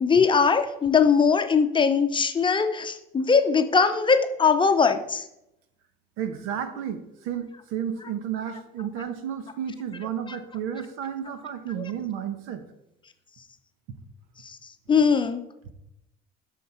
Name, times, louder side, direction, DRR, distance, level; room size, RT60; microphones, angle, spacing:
voice 1, 0.0-5.2 14.9-15.4, left 5 dB, 25° left, 8 dB, 0.7 m, -20 dB
voice 2, 6.2-12.6, right 9 dB, 85° right, 9 dB, 1.0 m, -32 dB
8.2 x 6.4 x 4.3 m, 0.86 s
cardioid pair, 105°, 21 cm